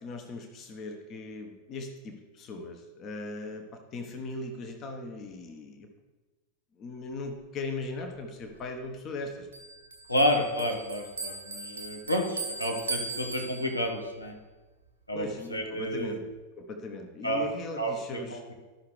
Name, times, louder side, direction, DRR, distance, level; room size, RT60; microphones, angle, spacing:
voice 1, 0.0-3.6 3.9-5.9 6.8-9.5 15.1-16.2 16.6-18.4, left 3 dB, 30° left, 4 dB, 1.1 m, -38 dB
Bell, 9.5-14.0, right 4 dB, 70° right, 1.4 m, -39 dB
voice 2, 10.1-14.3 15.1-16.2 17.2-17.4 17.8-18.4, equal, 85° left, 2 dB, 1.3 m, -30 dB
13.0 x 5.8 x 3.2 m, 1.2 s
figure-of-eight pair, 90°, 0 cm